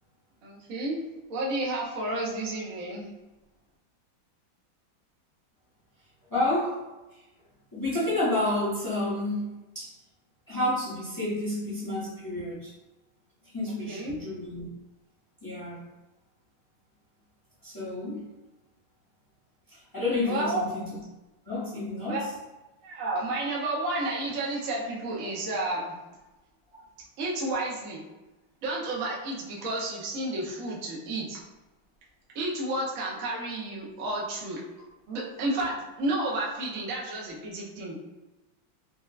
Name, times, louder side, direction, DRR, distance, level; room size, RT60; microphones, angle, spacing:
voice 1, 0.4-1.0 1.3-3.1 13.7-14.2 20.2-20.6 22.1-22.2 22.8-26.0 27.2-28.0 28.6-31.4 32.3-34.6 35.1-38.0, right 2 dB, 60° right, -4 dB, 0.9 m, -31 dB
voice 2, 6.3-6.8 7.7-9.9 10.5-12.7 13.5-14.6 15.4-15.8 17.6-18.2 19.9-20.9 21.5-22.2, left 2 dB, 20° left, -9 dB, 0.5 m, -30 dB
4.3 x 2.1 x 2.3 m, 1.0 s
omnidirectional pair, 2.1 m